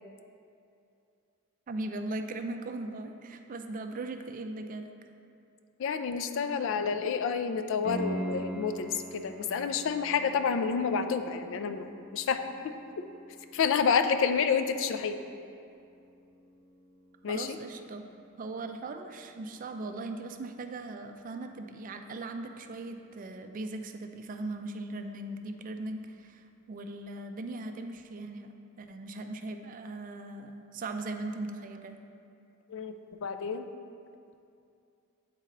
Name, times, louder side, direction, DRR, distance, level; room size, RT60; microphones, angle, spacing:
voice 1, 1.7-4.9 17.3-18.1 18.4-32.0, right 2 dB, 40° right, 7 dB, 0.4 m, -39 dB
voice 2, 5.8-12.7 13.5-15.2 17.2-17.6 32.7-32.9 33.2-33.7, left 6 dB, 65° left, 9 dB, 0.3 m, -29 dB
Piano, 7.8-18.5 21.8-21.9, right 1 dB, 70° right, 0.7 m, -43 dB
8.2 x 4.2 x 3.9 m, 2.5 s
head